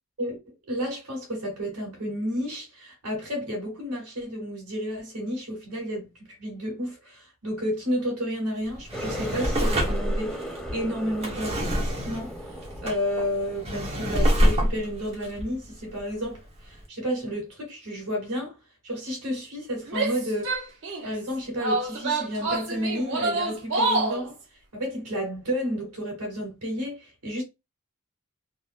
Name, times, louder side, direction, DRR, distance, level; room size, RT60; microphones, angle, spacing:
voice 1, 0.7-6.1 6.4-12.5 12.8-18.5 18.8-20.6 21.0-24.4 24.7-27.4, equal, 80° right, 1.7 m, -31 dB
Drawer open or close, 8.7-16.4 16.8-16.9, equal, 30° right, 0.8 m, -27 dB
Water tap faucet, 8.9-14.4 14.8-15.3 15.7-16.0 16.7-16.8, equal, 5° left, 0.5 m, -38 dB
Female speech woman speaking / Yell, 19.9-21.1 21.6-24.2, right 3 dB, 55° right, 1.0 m, -27 dB
3.5 x 2.5 x 2.3 m
head